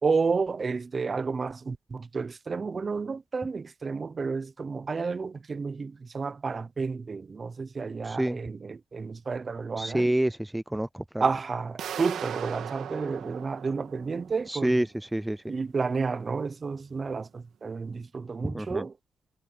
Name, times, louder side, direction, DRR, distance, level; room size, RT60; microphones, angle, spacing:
voice 1, 0.0-10.1 11.2-14.8 15.5-18.9, right 4 dB, 35° right, 0.9 m, -31 dB
voice 2, 8.0-8.4 9.8-11.2 14.5-15.5 18.4-18.8, right 1 dB, 5° right, 0.5 m, -28 dB
sound 1, 11.8-14.6, right 9 dB, 75° right, 1.6 m, -38 dB
cardioid pair, 105°, 0 cm